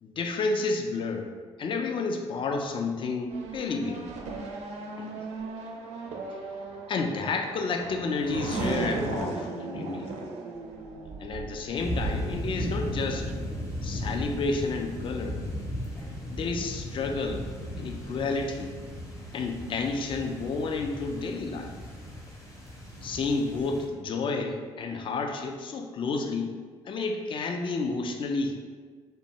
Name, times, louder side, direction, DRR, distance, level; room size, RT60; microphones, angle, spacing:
voice 1, 0.0-1.3 1.6-4.1 5.0-5.2 6.9-10.1 11.2-13.3 13.8-15.4 16.3-17.5 17.8-18.8 19.3-21.7 23.0-26.5 26.8-28.6, left 3 dB, 35° left, 4 dB, 0.4 m, -30 dB
Race car auto racing / Accelerating revving vroom, 3.3-12.4, right 3 dB, 50° right, 0.4 m, -36 dB
sound 1, 11.7-23.9, left 1 dB, 20° left, 0.8 m, -36 dB
2.5 x 2.1 x 2.8 m, 1.5 s
figure-of-eight pair, 45°, 15 cm